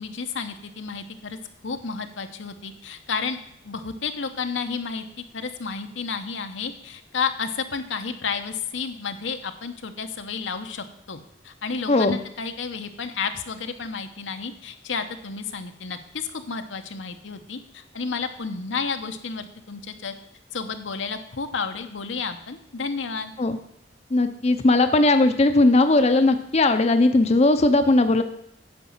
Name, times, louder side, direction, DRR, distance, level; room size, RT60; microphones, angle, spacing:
voice 1, 0.0-1.4 1.6-3.4 3.6-5.0 5.3-20.1 20.5-23.3, left 5 dB, 85° left, 7 dB, 0.9 m, -31 dB
voice 2, 11.9-12.2 23.4-23.6 24.1-28.2, left 2 dB, 35° left, 8 dB, 0.6 m, -18 dB
9.8 x 5.2 x 7.2 m, 0.72 s
head